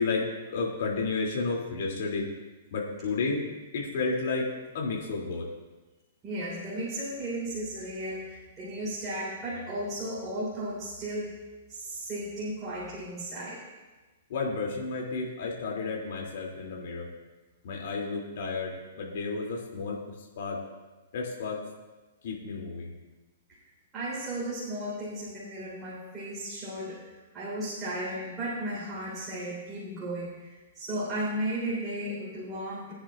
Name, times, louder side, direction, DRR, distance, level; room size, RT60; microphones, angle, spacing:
voice 1, 0.0-2.3 2.7-3.5 3.7-5.5 14.3-17.1 17.6-20.0 20.4-20.6 21.1-21.6 22.2-22.9, left 4 dB, 65° left, -2 dB, 2.7 m, -32 dB
voice 2, 6.2-11.4 11.7-13.6 23.9-32.9, right 1 dB, 15° right, -8 dB, 3.9 m, -35 dB
22.0 x 10.0 x 2.5 m, 1.2 s
hypercardioid pair, 155°, 0 cm